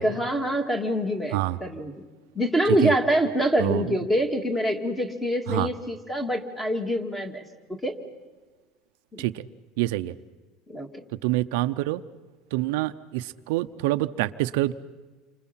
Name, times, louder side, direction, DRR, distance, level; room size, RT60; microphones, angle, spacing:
voice 1, 0.0-1.9 2.4-7.4 7.8-7.9 9.1-9.3 10.7-10.9, equal, 10° left, 6 dB, 1.9 m, -25 dB
voice 2, 9.8-10.1 11.2-12.0 12.5-14.7, right 17 dB, 70° right, 10 dB, 0.7 m, -26 dB
29.0 x 25.5 x 5.8 m, 1.3 s
cardioid pair, 175°, 0 cm